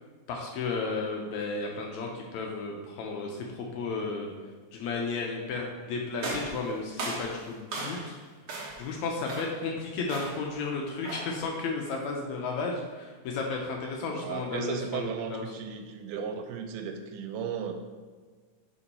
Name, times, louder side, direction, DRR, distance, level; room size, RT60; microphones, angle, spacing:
voice 1, 0.3-4.3 4.7-8.1 8.8-15.4, left 4 dB, 80° left, 0 dB, 1.8 m, -33 dB
sound 1, 6.2-8.2 8.5-8.9 9.3-9.7 10.1-10.5 11.0-11.4, right 2 dB, 60° right, 1.4 m, -37 dB
voice 2, 14.0-17.7, right 7 dB, 90° right, 5 dB, 2.1 m, -35 dB
5.8 x 4.4 x 4.1 m, 1.4 s
omnidirectional pair, 3.6 m